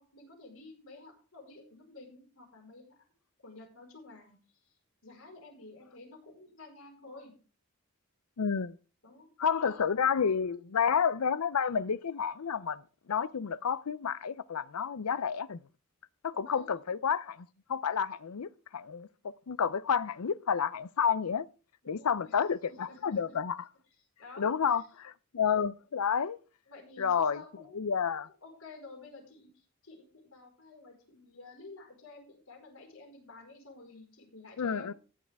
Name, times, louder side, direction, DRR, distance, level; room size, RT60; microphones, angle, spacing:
voice 1, 0.0-3.0 3.4-4.4 4.6-4.7 5.0-7.3 9.0-9.3 9.6-9.9 16.3-17.0 21.8-22.4 22.7-23.3 24.2-24.8 26.7-34.9, left 3 dB, 70° left, 4.7 m, -52 dB
voice 2, 8.4-8.8 9.4-12.8 13.1-15.6 16.2-21.5 21.9-23.6 24.4-26.4 27.0-27.4 27.7-28.3 34.6-34.9, left 7 dB, 90° left, 0.5 m, -30 dB
14.5 x 9.5 x 3.5 m
head